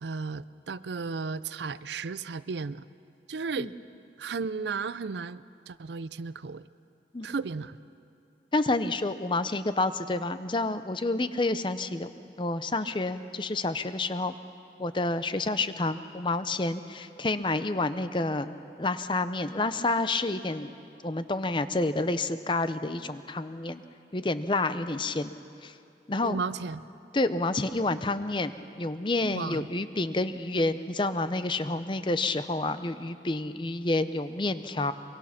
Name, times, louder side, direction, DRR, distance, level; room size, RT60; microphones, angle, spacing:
voice 1, 0.0-2.9 3.3-3.7 4.2-6.7 7.2-7.8 26.2-26.8 29.3-29.7, right 4 dB, 80° right, 16 dB, 0.5 m, -34 dB
voice 2, 8.5-14.4 14.8-20.8 21.0-23.8 24.1-25.3 25.6-25.7 26.1-26.4 27.1-34.9, left 2 dB, 30° left, 11 dB, 0.7 m, -29 dB
23.5 x 23.5 x 5.9 m, 2.5 s
head